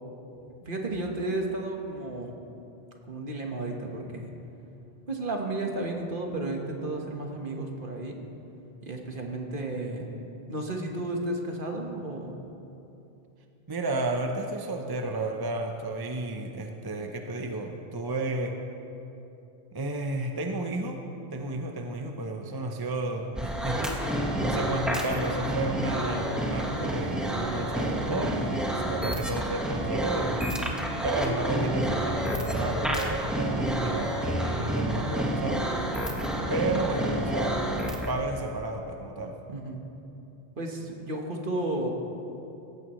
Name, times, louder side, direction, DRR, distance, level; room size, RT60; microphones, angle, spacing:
voice 1, 0.6-2.3 3.1-4.3 5.1-8.2 8.8-10.1 10.5-12.4 28.9-29.2 39.5-39.8 40.6-41.9, right 2 dB, 55° right, 1 dB, 1.6 m, -33 dB
voice 2, 13.7-18.6 19.7-21.0 21.3-30.5 31.0-35.7 36.5-37.7 38.1-39.4, right 2 dB, 25° right, 3 dB, 0.7 m, -32 dB
sound 1, 23.3-38.1, right 1 dB, ahead, 1.4 m, -29 dB
17.0 x 15.0 x 3.1 m, 2.9 s
omnidirectional pair, 1.1 m